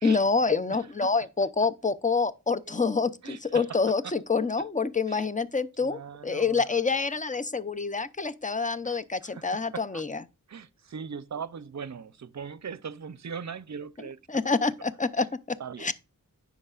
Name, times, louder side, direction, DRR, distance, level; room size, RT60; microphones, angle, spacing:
voice 1, 0.0-10.2 14.3-15.9, left 4 dB, 20° left, 0.6 m, -27 dB
voice 2, 0.6-1.1 2.6-2.7 3.2-3.6 4.0-4.1 5.1-5.3 5.8-6.6 8.8-9.4 9.7-10.0 10.5-14.2 15.2-15.3 15.6-15.9, right 6 dB, 55° right, 0.6 m, -40 dB
9.8 x 6.0 x 2.4 m
wide cardioid pair, 65°, 34 cm